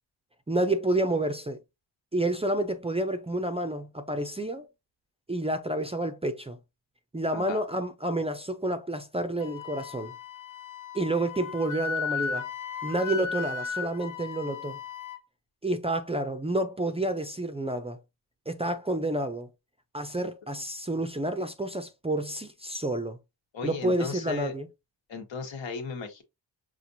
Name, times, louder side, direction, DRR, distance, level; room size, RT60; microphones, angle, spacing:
voice 1, 0.5-1.6 2.1-4.7 5.3-6.6 7.1-10.1 10.9-12.5 12.8-14.8 15.6-18.0 18.5-19.5 19.9-23.2 23.6-24.7, right 1 dB, 15° right, 0.4 m, -29 dB
Wind instrument woodwind instrument, 9.4-15.2, left 6 dB, 45° left, 0.7 m, -35 dB
voice 2, 23.5-24.5 25.1-26.2, left 5 dB, 85° left, 1.3 m, -36 dB
5.8 x 2.4 x 2.6 m
wide cardioid pair, 120°, 44 cm